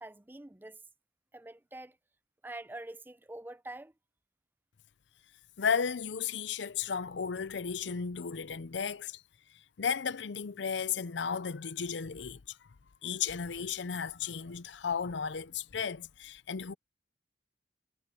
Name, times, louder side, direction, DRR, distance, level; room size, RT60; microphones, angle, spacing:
voice 1, 0.0-0.8 1.3-2.0 2.4-3.9, right 2 dB, 10° right, 0.5 m, -45 dB
voice 2, 5.6-9.2 9.5-12.6 13.0-16.7, left 6 dB, 80° left, 0.6 m, -34 dB
head